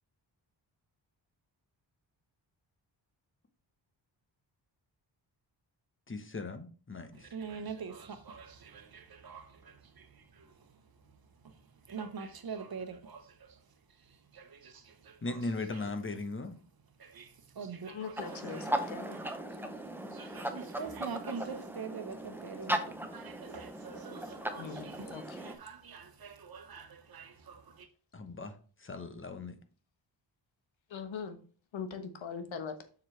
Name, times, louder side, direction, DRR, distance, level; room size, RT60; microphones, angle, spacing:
voice 1, 6.1-7.1 15.2-16.5 28.1-28.5 28.8-29.5, left 3 dB, 25° left, 1.0 m, -38 dB
voice 2, 7.1-13.6 14.0-15.8 17.0-18.7 19.1-19.8 20.1-27.9, right 5 dB, 50° right, 1.1 m, -45 dB
voice 3, 17.9-19.2 24.5-25.4 30.9-31.4 31.7-32.8, left 6 dB, 90° left, 1.3 m, -41 dB
sound 1, 18.2-25.5, right 1 dB, 5° right, 0.8 m, -38 dB
7.4 x 6.4 x 3.3 m
wide cardioid pair, 150°, 45 cm